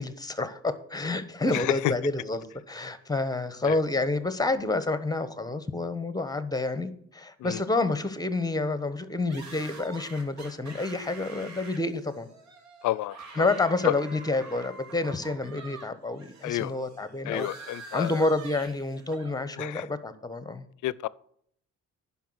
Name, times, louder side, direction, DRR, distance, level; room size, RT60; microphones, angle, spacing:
voice 1, 0.0-12.3 13.3-17.5 17.9-20.7, left 2 dB, 15° left, 1.1 m, -29 dB
sound 1, 9.3-15.9 16.2-19.3, right 3 dB, 65° right, 2.4 m, -46 dB
voice 2, 12.8-13.2 13.8-13.9 16.4-16.7 17.3-18.1 19.6-19.8 20.8-21.1, left 16 dB, 75° left, 0.5 m, -30 dB
10.5 x 5.9 x 6.3 m
cardioid pair, 90°, 30 cm